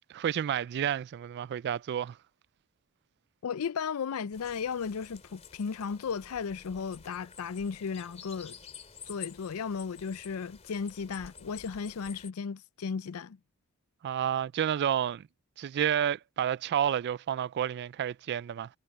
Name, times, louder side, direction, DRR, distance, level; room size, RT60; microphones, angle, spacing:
voice 1, 0.1-2.2 14.0-15.2 15.6-18.7, right 9 dB, 50° right, 0.3 m, -30 dB
voice 2, 3.4-8.6 9.1-13.4, left 6 dB, 85° left, 0.5 m, -35 dB
sound 1, 4.3-12.3, left 6 dB, 30° left, 2.9 m, -50 dB
head